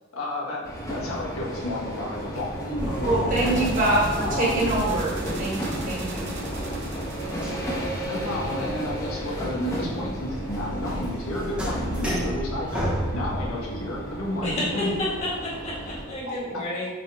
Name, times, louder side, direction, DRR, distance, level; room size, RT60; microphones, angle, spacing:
voice 1, 0.1-3.7 4.2-5.0 8.1-14.9 16.2-16.6, left 1 dB, 85° left, -3 dB, 1.5 m, -32 dB
sound 1, 0.6-16.0, equal, 15° left, 1.2 m, -34 dB
sound 2, 2.8-15.2, equal, 5° right, 0.9 m, -33 dB
sound 3, 2.8-12.0, right 1 dB, 55° right, 0.9 m, -39 dB
voice 2, 3.0-6.3, right 2 dB, 40° right, -3 dB, 1.6 m, -25 dB
voice 3, 14.4-16.9, left 1 dB, 30° left, -6 dB, 2.0 m, -30 dB
7.2 x 4.0 x 3.6 m, 1.3 s
head